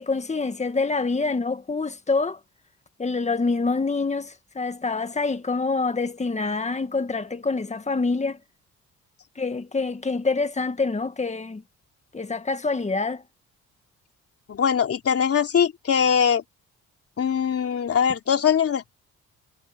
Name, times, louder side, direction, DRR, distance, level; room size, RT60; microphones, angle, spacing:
voice 1, 0.0-2.4 3.0-8.4 9.4-11.6 12.1-13.2, left 3 dB, 25° left, 1.8 m, -26 dB
voice 2, 14.5-16.4 17.2-18.9, left 7 dB, 50° left, 3.1 m, -22 dB
cardioid pair, 90°, 30 cm